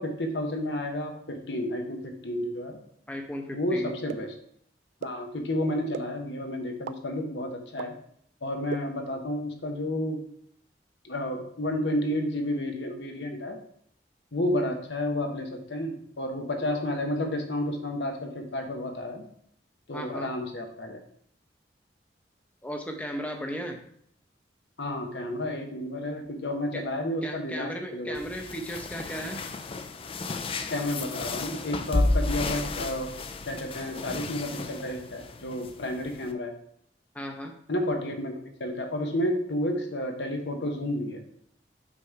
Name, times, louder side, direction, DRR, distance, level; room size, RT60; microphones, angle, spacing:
voice 1, 0.0-2.8 3.5-4.3 5.0-7.9 8.4-10.2 11.0-13.6 14.3-19.2 19.9-21.0 24.8-28.2 30.7-33.1 33.5-36.5 37.7-41.2, left 1 dB, 80° left, 4 dB, 1.0 m, -31 dB
voice 2, 3.1-4.0 19.9-20.3 22.6-23.8 26.7-26.8 27.2-29.4 37.1-37.5, equal, 10° left, 3 dB, 0.7 m, -36 dB
sound 1, 4.1-4.2 5.0-5.1 5.9-6.0 6.9-7.0 7.8-7.9 8.7-8.8, right 7 dB, 90° right, 0.3 m, -33 dB
sound 2, 28.1-36.3, left 2 dB, 30° left, 0.4 m, -32 dB
5.9 x 3.7 x 4.6 m, 0.67 s
head